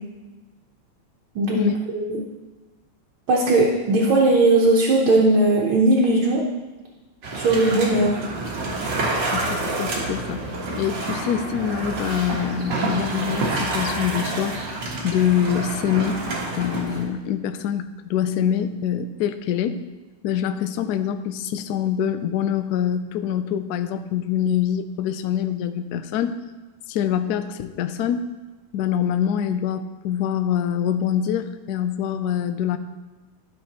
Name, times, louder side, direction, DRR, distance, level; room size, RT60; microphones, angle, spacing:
voice 1, 1.4-2.2 3.3-6.4 7.3-8.2, right 2 dB, 80° right, -3 dB, 1.9 m, -18 dB
sound 1, 7.2-17.1, right 2 dB, 60° right, 2.1 m, -28 dB
voice 2, 9.3-10.5 10.7-14.6 15.0-16.2 16.5-19.8 20.2-26.4 26.9-28.2 28.7-32.8, left 9 dB, 80° left, 10 dB, 0.8 m, -25 dB
12.5 x 6.2 x 3.0 m, 1.2 s
omnidirectional pair, 2.3 m